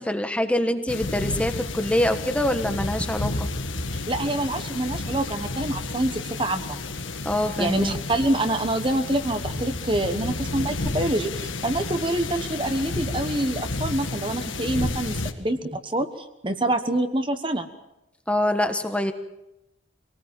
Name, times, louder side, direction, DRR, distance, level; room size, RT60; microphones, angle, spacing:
voice 1, 0.0-3.5 7.2-8.0 18.3-19.1, left 1 dB, 5° left, 7 dB, 1.2 m, -25 dB
sound 1, 0.9-15.3, left 2 dB, 85° left, 1.8 m, -31 dB
voice 2, 3.9-6.8 7.6-17.7, right 1 dB, 25° right, 8 dB, 1.2 m, -26 dB
25.5 x 19.0 x 7.7 m, 0.91 s
head